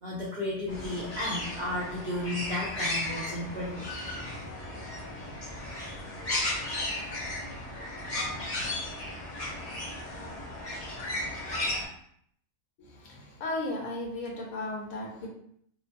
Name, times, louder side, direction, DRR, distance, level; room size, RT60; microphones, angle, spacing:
voice 1, 0.0-3.9, left 1 dB, 70° right, -6 dB, 0.4 m, -33 dB
sound 1, 0.7-11.8, left 1 dB, 45° left, 0.5 m, -35 dB
voice 2, 12.8-15.3, left 2 dB, 70° left, -2 dB, 1.2 m, -35 dB
2.9 x 2.2 x 2.5 m, 0.67 s
omnidirectional pair, 1.6 m